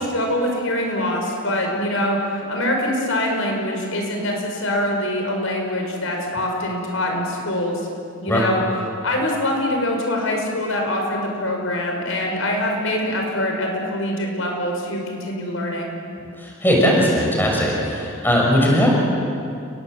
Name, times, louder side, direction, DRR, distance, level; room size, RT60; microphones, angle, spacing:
voice 1, 0.0-7.8 8.2-8.6 9.0-15.9, left 1 dB, 70° left, 1 dB, 5.6 m, -24 dB
voice 2, 16.4-18.9, equal, 10° left, -2 dB, 6.0 m, -18 dB
29.5 x 22.0 x 8.0 m, 2.5 s
head